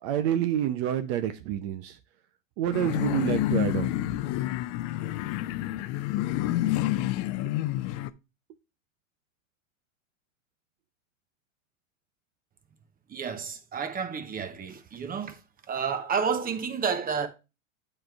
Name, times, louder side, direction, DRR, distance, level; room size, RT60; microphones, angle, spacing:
voice 1, 0.0-2.0 2.6-4.1, right 11 dB, 55° right, 0.7 m, -28 dB
sound 1, 2.7-8.1, left 15 dB, 45° left, 0.5 m, -28 dB
voice 2, 13.1-15.4 15.7-17.3, right 6 dB, 20° right, 0.9 m, -30 dB
8.7 x 3.3 x 4.6 m
hypercardioid pair, 110°, 39 cm